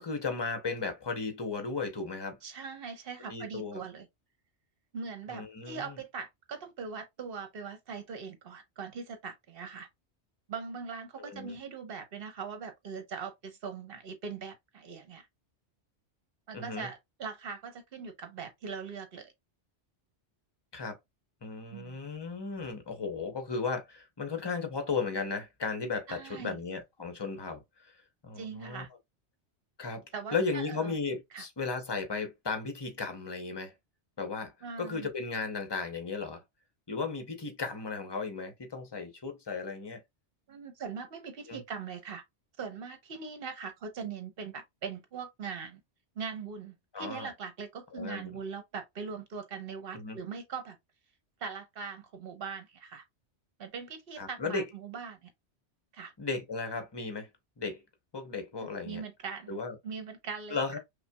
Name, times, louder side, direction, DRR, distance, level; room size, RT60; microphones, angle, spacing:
voice 1, 0.0-2.4 3.3-3.8 5.3-6.0 11.2-11.5 16.5-16.9 20.7-21.0 21.4-27.9 28.2-28.9 29.8-30.1 30.3-33.7 34.2-36.4 36.9-40.0 41.5-41.6 46.9-47.3 47.9-48.4 49.9-50.2 54.2-54.6 56.2-57.3 57.6-57.8 58.1-59.0 59.5-59.7 60.5-60.8, left 4 dB, 25° left, 0.7 m, -35 dB
voice 2, 2.4-4.1 4.9-9.9 10.5-15.3 16.5-19.3 21.7-22.0 26.1-26.6 28.4-28.9 30.1-30.9 31.3-31.4 34.6-35.1 40.5-42.2 42.6-45.8 46.2-50.8 51.4-53.0 53.6-55.3 55.9-56.1 58.6-60.8, right 5 dB, 55° right, 1.0 m, -41 dB
5.5 x 2.2 x 2.2 m
omnidirectional pair, 1.2 m